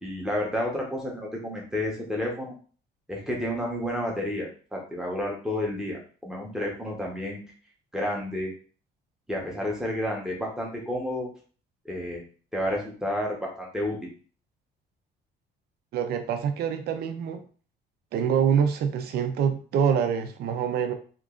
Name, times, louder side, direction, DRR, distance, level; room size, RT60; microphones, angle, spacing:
voice 1, 0.0-2.5 3.1-7.4 7.9-8.5 9.3-11.3 11.8-12.2 12.5-14.0, left 1 dB, 5° right, -2 dB, 0.8 m, -30 dB
voice 2, 15.9-17.4 18.1-20.9, right 7 dB, 60° right, 7 dB, 0.5 m, -25 dB
2.9 x 2.4 x 3.6 m, 0.40 s
cardioid pair, 175°, 19 cm